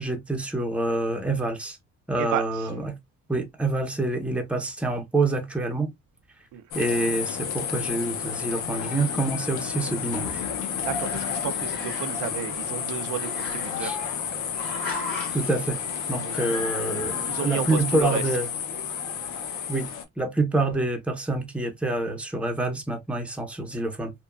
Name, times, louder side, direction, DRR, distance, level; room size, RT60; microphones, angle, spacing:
voice 1, 0.0-1.8 2.1-3.0 3.3-5.9 6.7-10.4 13.8-14.0 15.3-15.8 16.1-18.5 19.7-19.9 20.2-24.1, right 2 dB, 5° right, 0.7 m, -27 dB
voice 2, 2.2-2.7 6.5-6.6 10.8-14.0 16.1-16.4 17.3-18.2, right 11 dB, 80° right, 0.5 m, -32 dB
sound 1, 6.7-20.0, left 7 dB, 90° left, 0.7 m, -31 dB
Growling, 9.4-10.6 10.9-12.3 13.1-14.1 14.6-15.5, left 3 dB, 35° left, 1.7 m, -38 dB
sound 2, 10.1-12.6, left 8 dB, 55° left, 0.6 m, -42 dB
2.8 x 2.2 x 2.3 m
cardioid pair, 90°, 30 cm